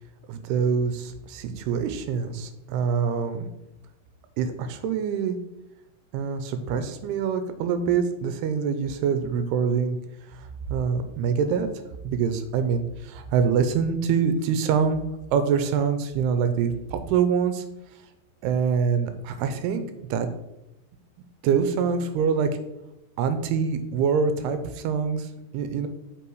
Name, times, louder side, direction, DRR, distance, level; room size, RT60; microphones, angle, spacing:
voice 1, 0.3-3.5 4.4-5.4 6.1-10.0 10.3-11.7 12.0-15.0 15.3-17.6 18.4-19.8 20.1-20.3 21.4-22.5 23.2-25.9, right 6 dB, 85° right, 9 dB, 2.6 m, -25 dB
6.9 x 5.2 x 4.7 m, 0.91 s
omnidirectional pair, 4.8 m